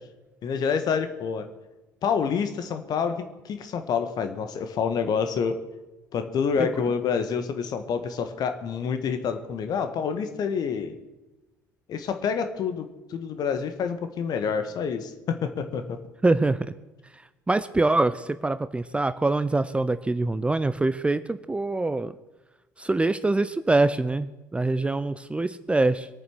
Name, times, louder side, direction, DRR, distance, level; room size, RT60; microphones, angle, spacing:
voice 1, 0.4-1.5 2.0-5.6 6.1-11.0 11.9-16.0, left 6 dB, 45° left, 9 dB, 1.7 m, -28 dB
voice 2, 16.2-16.6 17.5-22.1 22.8-26.1, right 2 dB, 10° right, 13 dB, 0.6 m, -24 dB
23.0 x 9.2 x 6.3 m, 1.1 s
figure-of-eight pair, 55°, 9 cm